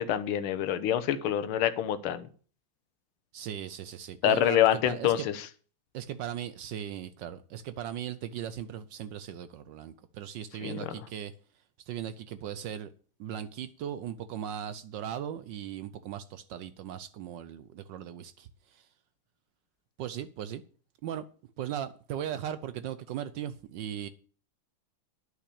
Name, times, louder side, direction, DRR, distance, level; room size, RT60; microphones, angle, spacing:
voice 1, 0.0-2.3 4.2-5.3 10.6-10.9, left 10 dB, 80° left, 1.7 m, -26 dB
voice 2, 3.3-5.3 5.9-11.3 11.9-12.9 13.2-18.9 20.0-20.6 21.0-21.2 21.6-24.1, right 10 dB, 70° right, 1.1 m, -38 dB
9.7 x 5.8 x 8.4 m
omnidirectional pair, 2.4 m